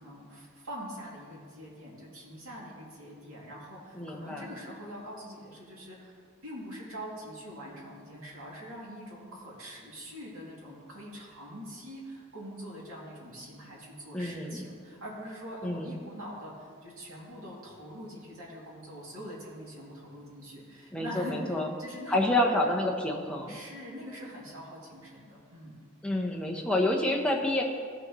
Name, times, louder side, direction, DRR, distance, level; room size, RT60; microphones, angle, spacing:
voice 1, 0.0-22.6 23.5-25.8, equal, 90° right, -5 dB, 2.6 m, -44 dB
voice 2, 3.9-4.5 14.1-14.6 15.6-15.9 20.9-21.7 22.1-23.6 26.0-27.6, left 1 dB, 5° left, -1 dB, 0.8 m, -28 dB
16.0 x 6.3 x 3.1 m, 2.1 s
head